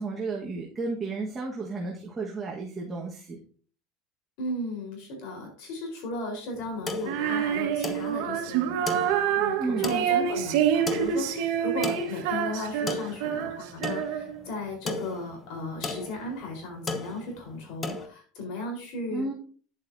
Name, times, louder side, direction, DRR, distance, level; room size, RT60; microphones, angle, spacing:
voice 1, 0.0-3.4 9.6-9.9 19.1-19.3, right 3 dB, 20° right, -1 dB, 1.4 m, -32 dB
voice 2, 4.4-19.3, left 1 dB, 65° left, 2 dB, 4.1 m, -36 dB
sound 1, 6.5-18.1, left 3 dB, 20° left, 1.0 m, -37 dB
Female singing, 7.0-14.4, right 9 dB, 70° right, 1.4 m, -27 dB
10.0 x 8.0 x 2.7 m, 0.42 s
supercardioid pair, 145°, 0 cm